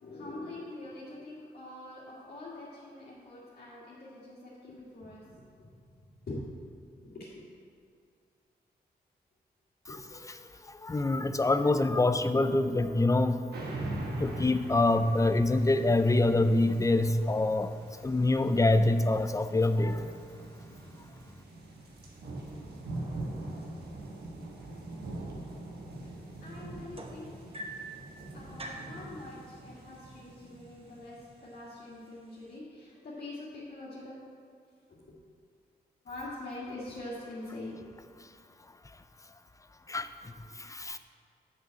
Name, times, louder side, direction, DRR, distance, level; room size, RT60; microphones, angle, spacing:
voice 1, 0.0-5.7 6.3-6.4 7.0-7.4 9.9-10.0 26.0-26.1 26.4-27.3 28.3-34.2 34.9-35.1 36.0-37.9, left 2 dB, 75° left, -10 dB, 2.1 m, -44 dB
voice 2, 10.7-13.4 14.2-17.7 18.0-20.0 39.9-41.0, left 2 dB, 20° left, 10 dB, 0.5 m, -26 dB
sound 1, 13.5-31.3, right 2 dB, 90° right, 1.4 m, -42 dB
sound 2, 26.9-28.0 28.6-29.0 30.0-30.1 30.5-30.9 31.6-31.7, right 2 dB, 35° right, 1.1 m, -42 dB
7.1 x 6.2 x 7.6 m, 2.2 s
cardioid pair, 75°, 16 cm